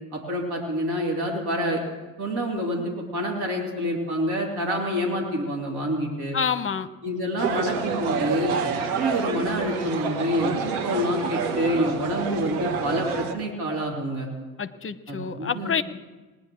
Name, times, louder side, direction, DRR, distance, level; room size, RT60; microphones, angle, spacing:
voice 1, 0.1-1.8 2.2-6.4 7.0-8.6 9.0-14.3 15.1-15.7, equal, 65° right, -1 dB, 3.4 m, -27 dB
voice 2, 6.3-6.9 14.6-15.8, left 6 dB, 30° left, 12 dB, 0.9 m, -27 dB
sound 1, 7.4-13.3, right 5 dB, 80° right, 1.2 m, -28 dB
20.5 x 10.5 x 3.1 m, 1.2 s
hypercardioid pair, 50°, 42 cm